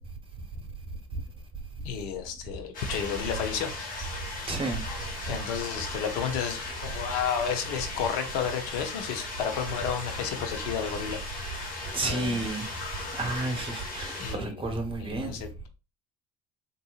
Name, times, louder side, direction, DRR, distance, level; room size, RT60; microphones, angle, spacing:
voice 1, 1.8-3.7 5.3-11.2 12.1-12.5 14.2-14.6 15.0-15.7, left 7 dB, 70° left, 0.7 m, -32 dB
sound 1, 2.7-14.3, left 3 dB, 45° left, 1.4 m, -37 dB
voice 2, 4.5-4.8 11.9-12.7 13.2-15.4, right 2 dB, 25° right, 1.0 m, -31 dB
3.7 x 2.6 x 2.4 m
hypercardioid pair, 60°, 19 cm